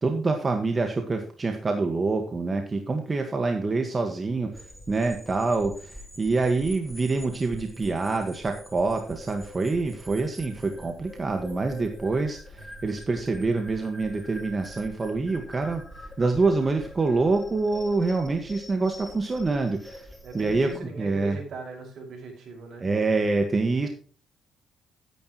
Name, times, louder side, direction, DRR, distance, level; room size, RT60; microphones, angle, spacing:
voice 1, 0.0-15.8 16.2-20.1 20.3-20.7 21.0-21.4 22.8-23.9, right 3 dB, 30° right, 4 dB, 1.7 m, -26 dB
tonal drone with frequencies above the hearing range, 4.5-20.8, equal, ahead, 2.9 m, -44 dB
voice 2, 20.2-22.9, right 3 dB, 60° right, 1 dB, 5.8 m, -39 dB
13.0 x 10.0 x 3.1 m, 0.40 s
cardioid pair, 90°, 0 cm